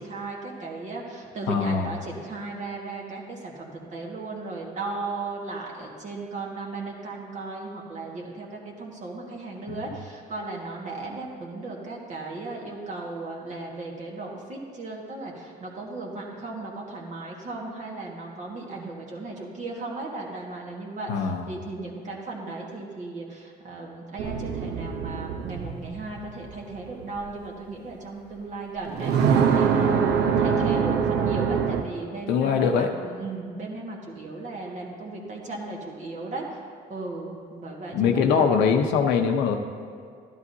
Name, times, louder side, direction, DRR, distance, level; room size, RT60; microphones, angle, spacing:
voice 1, 0.0-36.5 36.9-38.5, right 3 dB, 45° right, -2 dB, 1.7 m, -36 dB
voice 2, 1.5-1.9 9.7-9.8 21.1-21.5 32.3-32.9 37.9-39.6, left 6 dB, 85° left, 4 dB, 0.7 m, -22 dB
sound 1, 24.2-27.3 28.8-31.8, right 6 dB, 75° right, 0.7 m, -24 dB
12.0 x 11.0 x 2.7 m, 2.2 s
cardioid pair, 110°, 17 cm